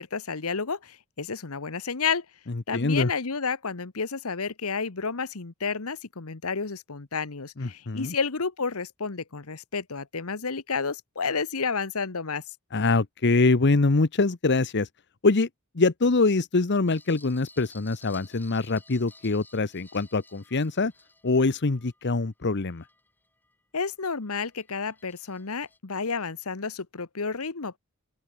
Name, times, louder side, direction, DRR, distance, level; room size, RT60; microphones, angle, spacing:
voice 1, 0.0-2.2 2.7-12.4 23.7-27.8, left 5 dB, 70° left, 1.2 m, -31 dB
voice 2, 2.7-3.1 7.6-8.1 12.7-14.9 15.2-15.5 15.7-20.9 21.2-22.8, left 3 dB, 50° left, 0.9 m, -24 dB
sound 1, 16.9-23.6 24.0-25.8, left 2 dB, 10° left, 5.7 m, -55 dB
open air
head